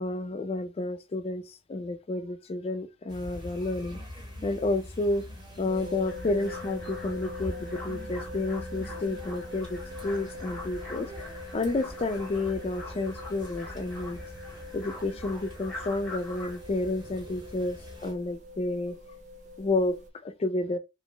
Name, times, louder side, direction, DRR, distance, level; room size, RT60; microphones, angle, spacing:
voice 1, 0.0-4.0 4.4-5.3 5.6-14.2 14.7-18.9 19.6-20.0 20.2-20.8, left 2 dB, 30° left, 0.3 m, -30 dB
sound 1, 3.1-18.1, left 1 dB, 25° right, 0.9 m, -44 dB
sound 2, 5.7-20.1, left 2 dB, 40° right, 0.4 m, -43 dB
sound 3, 6.0-16.6, left 1 dB, 5° left, 0.8 m, -45 dB
2.5 x 2.0 x 3.0 m
head